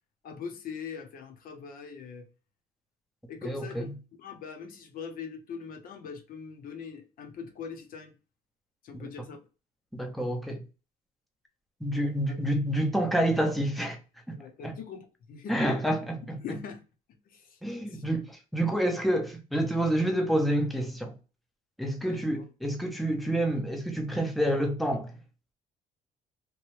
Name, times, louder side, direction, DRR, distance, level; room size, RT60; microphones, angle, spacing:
voice 1, 0.2-2.3 3.3-3.9 4.2-8.1 8.8-9.4 12.3-12.4 14.3-15.6 16.4-16.8 17.3-17.6 17.9-18.0 22.0-22.4, left 6 dB, 55° left, 0.7 m, -42 dB
voice 2, 3.4-3.9 8.9-9.1 9.9-10.6 11.8-14.0 14.3-14.4 14.6-14.8 15.5-16.4 17.6-21.1 21.8-25.2, right 1 dB, ahead, 0.6 m, -28 dB
3.0 x 2.2 x 3.1 m
cardioid pair, 110°, 17 cm